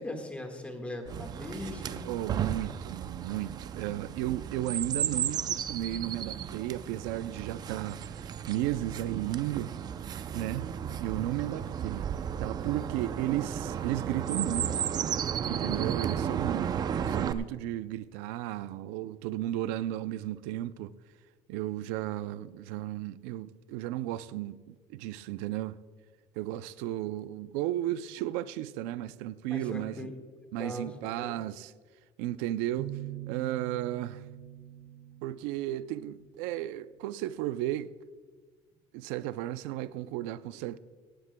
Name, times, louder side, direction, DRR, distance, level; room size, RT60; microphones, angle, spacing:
voice 1, 0.0-2.0 11.5-11.8 15.4-15.9 29.5-30.1 30.6-30.9 31.2-31.4, left 1 dB, 10° left, 1.6 m, -40 dB
Chirp tweet, 1.1-17.3, right 8 dB, 35° right, 0.5 m, -34 dB
voice 2, 2.0-9.7 10.3-10.7 11.0-12.1 12.4-14.7 15.5-16.7 17.0-20.9 21.5-25.8 26.4-30.1 30.5-31.7 32.2-34.2 35.2-37.9 38.9-40.8, right 14 dB, 90° right, 0.5 m, -34 dB
sound 1, 32.8-36.5, right 14 dB, 50° right, 2.5 m, -43 dB
17.5 x 16.0 x 2.2 m
cardioid pair, 140°, 12 cm